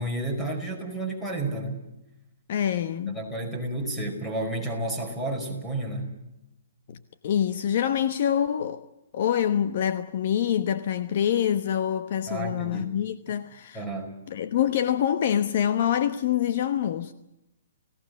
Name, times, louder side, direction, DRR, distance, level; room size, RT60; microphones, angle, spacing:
voice 1, 0.0-1.8 3.1-6.1 12.3-12.9 13.7-14.2, right 2 dB, 5° left, 5.2 m, -31 dB
voice 2, 2.5-3.2 6.9-7.0 7.2-8.8 9.1-13.8 14.3-17.1, left 9 dB, 50° left, 1.0 m, -25 dB
29.5 x 17.5 x 6.4 m
hypercardioid pair, 160°, 0 cm